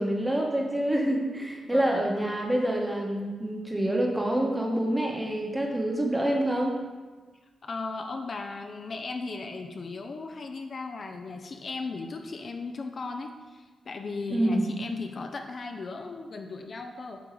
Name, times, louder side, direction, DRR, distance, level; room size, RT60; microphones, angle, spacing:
voice 1, 0.0-6.8 14.3-14.6, right 1 dB, 15° right, 0 dB, 1.1 m, -27 dB
voice 2, 7.6-17.2, left 3 dB, 50° left, 4 dB, 0.5 m, -37 dB
7.9 x 3.8 x 3.1 m, 1.3 s
cardioid pair, 75°, 0 cm